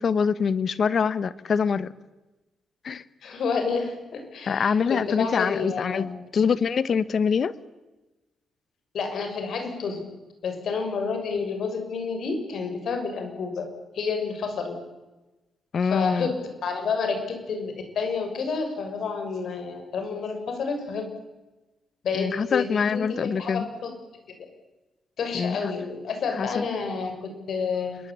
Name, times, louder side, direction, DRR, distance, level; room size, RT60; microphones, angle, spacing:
voice 1, 0.0-1.9 2.8-3.0 4.5-7.5 15.7-16.3 22.1-23.7 25.3-25.7 26.4-26.6, left 6 dB, 45° left, 16 dB, 1.2 m, -24 dB
voice 2, 3.2-6.1 8.9-10.0 10.4-13.7 13.9-14.8 15.9-21.1 22.0-23.9 25.2-28.0, left 5 dB, 60° left, 6 dB, 7.0 m, -29 dB
27.5 x 22.5 x 8.9 m, 1.1 s
cardioid pair, 145°, 0 cm